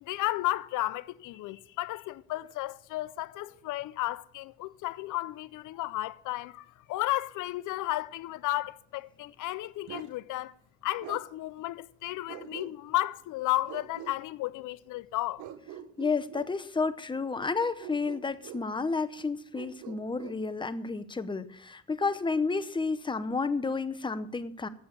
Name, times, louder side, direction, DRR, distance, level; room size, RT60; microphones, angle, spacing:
voice 1, 0.0-10.5 10.8-15.4, left 16 dB, 80° left, 0.5 m, -33 dB
Bark, 9.9-10.1 11.0-11.2 12.3-13.0 13.7-14.2 15.4-16.5 17.8-18.7 19.5-20.4, right 10 dB, 80° right, 0.9 m, -44 dB
voice 2, 16.0-24.7, left 4 dB, 15° left, 0.7 m, -31 dB
8.6 x 7.2 x 8.5 m
cardioid pair, 90°, 30 cm